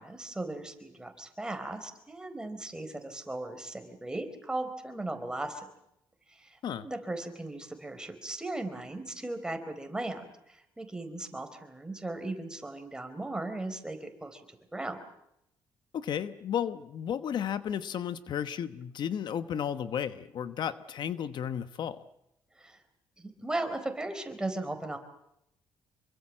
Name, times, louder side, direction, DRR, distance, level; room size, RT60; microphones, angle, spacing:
voice 1, 0.0-5.7 6.3-15.0 22.6-22.8 23.2-25.0, right 2 dB, 10° right, 7 dB, 4.2 m, -37 dB
voice 2, 15.9-22.0, left 9 dB, 60° left, 12 dB, 1.1 m, -33 dB
27.0 x 23.5 x 7.5 m, 0.81 s
cardioid pair, 120°, 9 cm